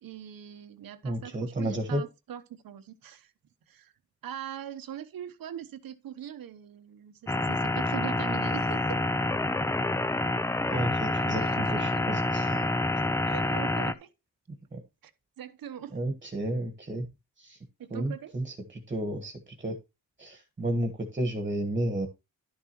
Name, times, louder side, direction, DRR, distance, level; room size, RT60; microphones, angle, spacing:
voice 1, 0.0-3.3 3.7-3.9 4.2-9.0 11.4-11.9 13.3-14.1 15.0-15.1 15.4-15.9 17.8-18.3, right 10 dB, 85° right, 1.0 m, -41 dB
voice 2, 1.0-2.0 10.7-12.7 14.7-14.8 15.9-17.0 17.4-17.6 17.9-19.8 20.2-22.1, right 1 dB, 25° right, 1.4 m, -32 dB
sound 1, 7.3-13.9, left 2 dB, 10° left, 0.4 m, -28 dB
11.5 x 7.3 x 3.0 m
wide cardioid pair, 130°, 34 cm